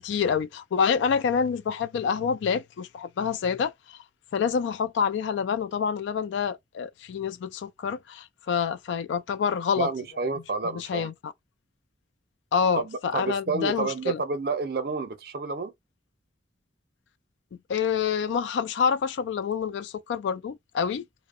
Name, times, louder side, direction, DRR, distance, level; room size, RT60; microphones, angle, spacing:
voice 1, 0.0-4.0 4.3-9.9 10.6-11.3 12.5-14.2 17.7-21.1, left 6 dB, 80° left, 0.3 m, -27 dB
voice 2, 9.8-11.1 12.7-15.7, right 4 dB, 55° right, 0.5 m, -30 dB
2.6 x 2.0 x 2.4 m
head